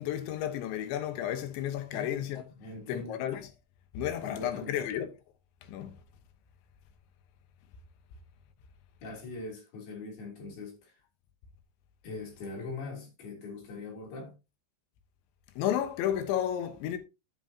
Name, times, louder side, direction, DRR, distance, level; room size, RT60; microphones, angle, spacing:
voice 1, 0.0-2.4 2.9-3.4 4.0-5.1 5.7-5.9 15.6-17.0, left 11 dB, 80° left, 3.5 m, -32 dB
voice 2, 2.5-3.2 4.2-4.9 9.0-11.0 12.0-14.4, left 3 dB, 60° left, 4.9 m, -41 dB
11.0 x 9.1 x 2.8 m
omnidirectional pair, 5.2 m